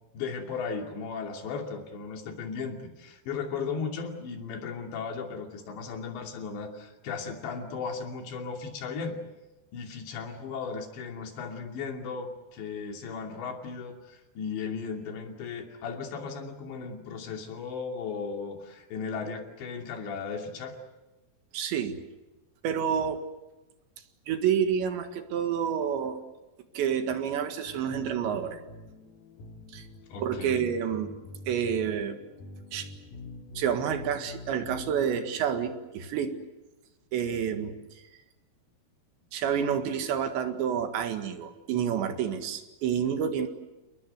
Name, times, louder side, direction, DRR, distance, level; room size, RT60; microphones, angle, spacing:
voice 1, 0.1-9.2 9.7-20.8 30.1-30.7, left 5 dB, 85° left, 2 dB, 5.0 m, -36 dB
voice 2, 21.5-22.0 22.6-23.2 24.3-26.2 26.8-28.6 29.7-29.9 30.2-31.1 31.5-32.2 32.7-32.9 33.6-36.4 37.1-37.8 39.3-43.5, right 8 dB, 85° right, 7 dB, 4.1 m, -29 dB
sound 1, 27.7-35.4, left 2 dB, 60° left, 3.8 m, -46 dB
29.0 x 20.0 x 8.1 m, 1.1 s
omnidirectional pair, 5.0 m